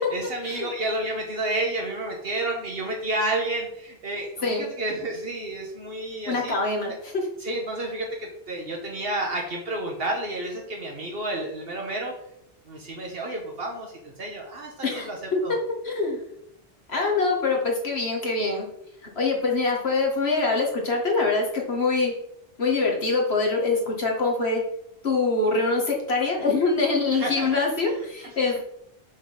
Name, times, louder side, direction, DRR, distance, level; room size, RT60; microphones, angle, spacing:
voice 1, 0.1-6.6 6.9-7.0 7.4-12.1 12.6-15.5 27.1-27.6 28.4-28.5, right 2 dB, 70° right, 1 dB, 1.3 m, -30 dB
voice 2, 6.3-7.2 14.8-15.6 15.8-16.2 16.9-18.7 19.2-22.1 22.6-24.6 25.0-28.6, left 3 dB, 80° left, -1 dB, 2.1 m, -24 dB
6.3 x 4.0 x 6.3 m, 0.76 s
omnidirectional pair, 1.0 m